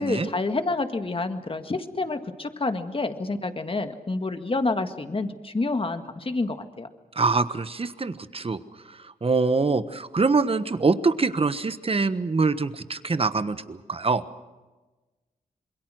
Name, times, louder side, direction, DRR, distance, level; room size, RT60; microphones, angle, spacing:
voice 1, 0.0-6.9, left 3 dB, 35° left, 7 dB, 1.9 m, -28 dB
voice 2, 7.1-8.6 8.9-14.2, right 4 dB, 40° right, 12 dB, 1.3 m, -24 dB
27.0 x 21.5 x 6.3 m, 1.2 s
cardioid pair, 50°, 15 cm